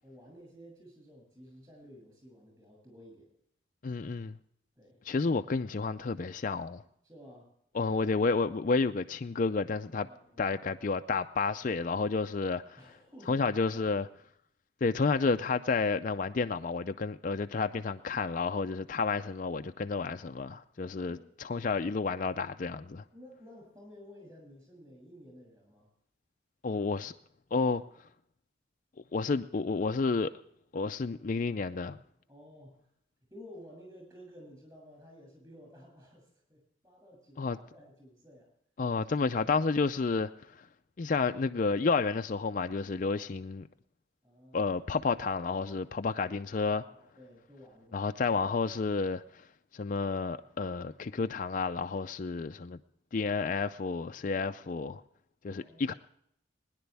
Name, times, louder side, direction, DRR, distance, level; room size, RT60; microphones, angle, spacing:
voice 1, 0.0-3.3 4.8-5.0 7.0-7.5 10.0-10.4 12.8-13.9 21.1-21.3 23.1-25.9 32.3-32.8 33.3-38.5 44.2-44.7 46.7-48.1 55.4-56.0, equal, 20° right, 7.2 m, -53 dB
voice 2, 3.8-4.4 5.1-6.8 7.7-10.1 10.4-12.8 13.3-14.0 14.8-21.2 21.4-23.0 26.6-27.1 27.5-27.8 29.1-30.3 30.7-32.0 37.4-37.6 38.8-40.7 41.0-43.7 44.5-46.8 47.9-49.5 49.7-52.8 53.1-55.0 55.4-55.9, left 4 dB, 40° left, 0.4 m, -30 dB
21.5 x 10.5 x 3.4 m
head